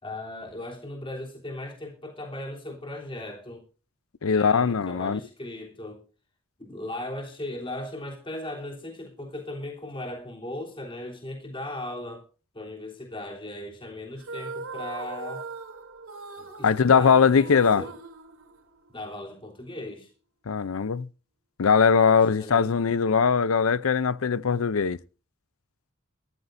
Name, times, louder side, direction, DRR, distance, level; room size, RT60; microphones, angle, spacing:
voice 1, 0.0-3.6 4.2-6.0 6.6-12.2 12.5-15.4 16.4-17.9 18.9-20.1 22.3-22.7, left 1 dB, 25° left, 3.3 m, -37 dB
voice 2, 4.2-5.2 16.6-17.8 20.5-21.1 21.6-25.0, left 6 dB, 75° left, 0.6 m, -21 dB
sound 1, 14.2-19.0, right 3 dB, 80° right, 3.1 m, -40 dB
21.5 x 14.0 x 2.6 m
head